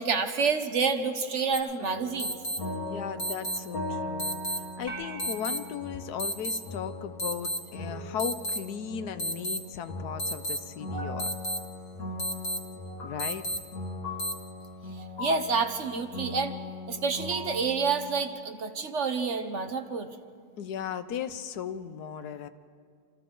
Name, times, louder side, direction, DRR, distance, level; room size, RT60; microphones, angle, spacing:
voice 1, 0.0-2.4 15.2-16.6 16.9-20.1, right 5 dB, 50° right, 8 dB, 1.2 m, -28 dB
sound 1, 1.5-1.6 2.2-2.6 3.2-3.6 4.2-4.6 5.2-5.6 6.2-6.6 7.2-7.6 8.2-8.6 9.2-9.6 10.2-10.6 11.2-11.6 12.2-12.6 13.2-13.6 14.2-14.3, equal, 50° left, 2.2 m, -31 dB
sound 2, 1.8-18.2, left 1 dB, 65° left, 2.3 m, -39 dB
voice 2, 2.9-11.3 13.0-13.5 20.6-22.5, left 8 dB, 80° left, 11 dB, 1.3 m, -37 dB
sound 3, 4.9-7.3, right 1 dB, 70° right, 4.3 m, -45 dB
27.0 x 27.0 x 3.9 m, 2.2 s
omnidirectional pair, 1.7 m